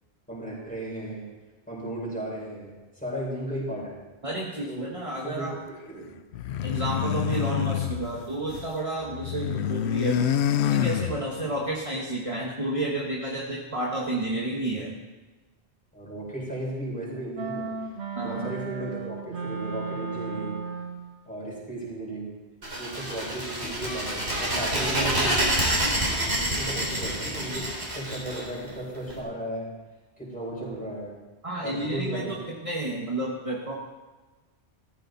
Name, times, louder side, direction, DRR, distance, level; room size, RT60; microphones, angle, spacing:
voice 1, 0.3-1.3 1.7-4.0 4.7-4.9 5.2-6.1 15.9-17.7 18.2-20.6 21.3-22.4 22.8-25.6 26.4-29.7 30.2-31.2 31.6-32.4, right 1 dB, 5° left, -5 dB, 5.6 m, -35 dB
voice 2, 4.2-5.5 6.6-15.0 18.2-18.5 31.4-33.7, right 2 dB, 30° right, -3 dB, 1.5 m, -31 dB
sound 1, 6.3-8.8 9.0-11.6, left 10 dB, 80° left, 0.9 m, -27 dB
sound 2, 17.4-21.2, right 5 dB, 90° right, 1.3 m, -35 dB
sound 3, 22.6-29.1, right 1 dB, 75° right, 4.2 m, -27 dB
14.5 x 14.5 x 4.1 m, 1.2 s
omnidirectional pair, 1.1 m